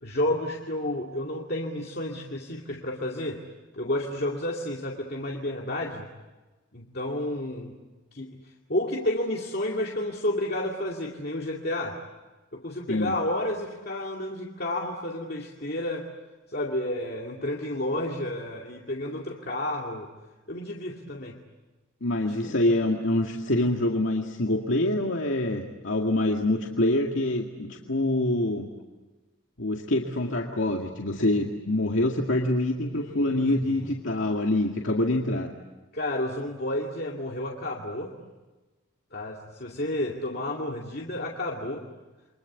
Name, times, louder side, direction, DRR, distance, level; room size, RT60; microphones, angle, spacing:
voice 1, 0.0-3.4 3.7-6.1 6.7-7.8 8.1-8.4 8.7-12.0 12.5-16.1 16.5-20.1 20.5-21.4 22.3-22.6 33.0-34.0 35.9-38.1 39.1-41.9, left 1 dB, 50° left, -1 dB, 2.4 m, -31 dB
voice 2, 22.0-28.7 29.6-35.5, left 1 dB, 80° left, 1 dB, 2.2 m, -25 dB
29.5 x 24.5 x 8.4 m, 1.2 s
head